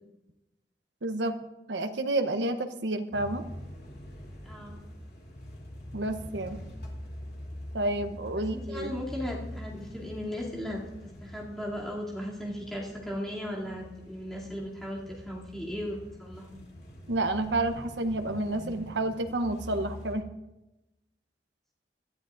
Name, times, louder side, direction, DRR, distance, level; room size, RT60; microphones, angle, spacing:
voice 1, 1.0-1.4 1.7-3.4 5.9-6.6 7.7-8.9 17.1-20.2, right 2 dB, 90° right, 8 dB, 0.9 m, -30 dB
sound 1, 3.1-20.1, equal, 60° left, 2.9 m, -44 dB
voice 2, 4.4-4.8 8.4-16.6, left 1 dB, ahead, -5 dB, 2.7 m, -37 dB
20.5 x 12.5 x 2.6 m, 0.97 s
head